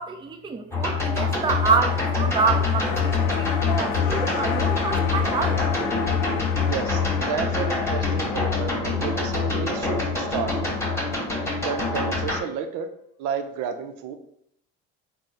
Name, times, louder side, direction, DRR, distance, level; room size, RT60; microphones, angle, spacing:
voice 1, 0.0-5.6, right 5 dB, 15° right, 5 dB, 0.4 m, -27 dB
sound 1, 0.7-12.4, left 4 dB, 10° left, 1.2 m, -25 dB
sound 2, 1.2-11.6 11.9-12.0, left 8 dB, 85° left, 0.5 m, -34 dB
voice 2, 6.7-10.9 11.6-12.9 13.2-14.1, right 6 dB, 65° right, 7 dB, 0.6 m, -31 dB
3.5 x 2.1 x 4.1 m, 0.69 s
supercardioid pair, 80°, 32 cm